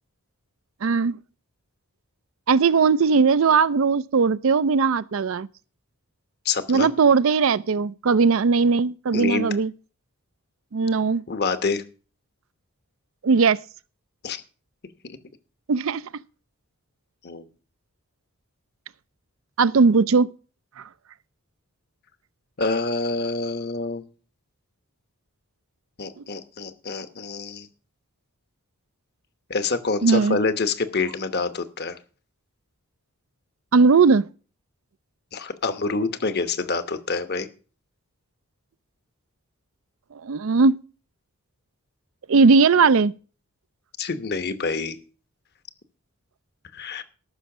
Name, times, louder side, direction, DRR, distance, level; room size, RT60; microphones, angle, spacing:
voice 1, 0.8-1.2 2.5-5.5 6.7-9.7 10.7-11.2 13.2-13.6 15.7-16.0 19.6-20.3 20.8-20.9 30.0-30.4 33.7-34.3 40.2-40.8 42.3-43.1, right 4 dB, 65° right, 0.5 m, -18 dB
voice 2, 6.4-6.9 9.1-9.5 11.3-11.8 14.2-14.4 17.2-17.5 22.6-24.0 26.0-27.7 29.5-32.0 35.3-37.5 44.0-45.0 46.7-47.0, left 4 dB, 45° left, 1.1 m, -26 dB
13.5 x 6.3 x 6.0 m
head